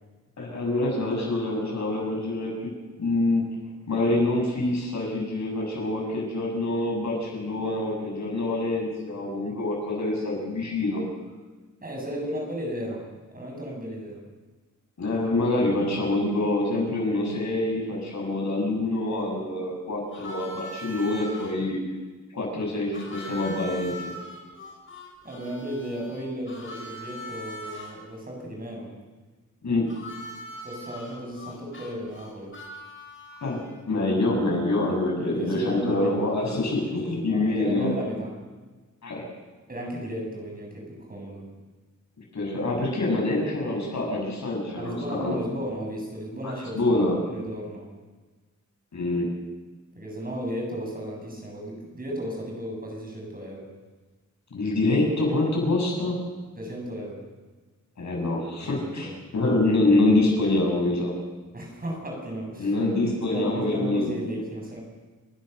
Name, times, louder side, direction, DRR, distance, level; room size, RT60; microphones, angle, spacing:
voice 1, 0.4-2.7 3.0-3.5 3.9-11.0 15.0-21.8 22.3-24.1 29.6-29.9 33.4-33.6 33.9-37.9 39.0-39.2 42.3-45.3 46.4-47.2 48.9-49.3 54.5-56.2 58.0-61.1 62.6-64.1, left 2 dB, 65° left, 0 dB, 7.5 m, -26 dB
voice 2, 11.8-14.2 25.2-28.9 30.6-32.5 35.3-36.1 36.5-38.3 39.7-41.5 44.8-47.9 50.0-53.7 56.6-57.2 58.6-59.2 61.5-62.7 63.3-64.8, equal, 30° right, 0 dB, 7.0 m, -35 dB
Harmonica, 20.1-21.5 22.9-27.9 29.9-33.8, equal, 40° left, 6.2 m, -41 dB
29.5 x 16.0 x 6.7 m, 1.3 s
wide cardioid pair, 145°, 30 cm